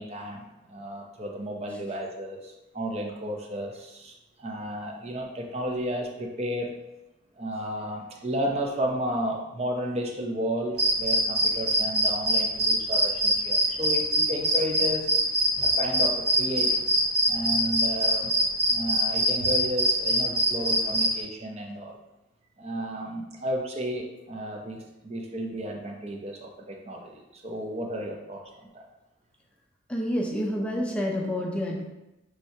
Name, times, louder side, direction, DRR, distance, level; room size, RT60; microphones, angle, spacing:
voice 1, 0.0-6.7 7.4-15.1 15.6-18.3 18.7-22.0 22.6-28.9, equal, 30° right, 1 dB, 0.6 m, -33 dB
sound 1, 10.8-21.1, equal, 50° right, 1.2 m, -23 dB
voice 2, 29.9-31.8, equal, 5° left, -1 dB, 0.5 m, -28 dB
6.1 x 3.2 x 2.7 m, 0.96 s
head